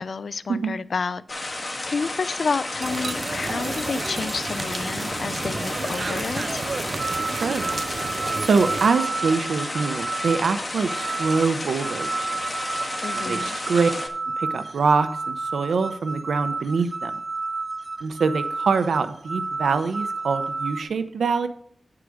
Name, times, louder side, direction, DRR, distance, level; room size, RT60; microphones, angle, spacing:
voice 1, 0.0-6.6 13.0-13.6, left 5 dB, 70° left, 17 dB, 0.4 m, -30 dB
sound 1, 1.3-14.1, left 2 dB, 30° left, 1.6 m, -32 dB
sound 2, 2.8-8.9, right 4 dB, 60° right, 0.5 m, -32 dB
sound 3, 7.0-20.8, right 3 dB, 30° right, 1.0 m, -31 dB
voice 2, 7.3-7.6 8.4-12.5 13.1-13.9 14.4-17.2 18.0-21.5, right 5 dB, 90° right, 11 dB, 0.7 m, -24 dB
9.3 x 4.8 x 6.3 m, 0.65 s
cardioid pair, 55°, 0 cm